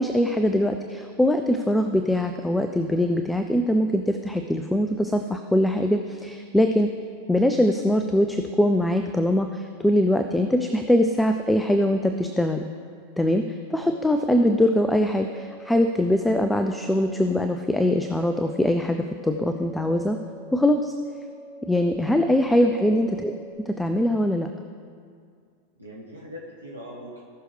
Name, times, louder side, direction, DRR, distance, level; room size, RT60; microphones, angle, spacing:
voice 1, 0.0-6.9 7.3-12.6 13.2-20.2 20.5-20.9 21.7-23.4 23.7-24.5, left 1 dB, 5° left, 6 dB, 0.5 m, -22 dB
sound 1, 13.7-14.4 15.1-15.8 16.6-17.3 17.9-18.6 19.2-23.5, right 1 dB, 75° left, 1.3 m, -45 dB
voice 2, 22.7-23.1 25.8-27.2, equal, 85° right, -5 dB, 1.4 m, -41 dB
18.5 x 6.3 x 3.4 m, 2.2 s
figure-of-eight pair, 90°, 0 cm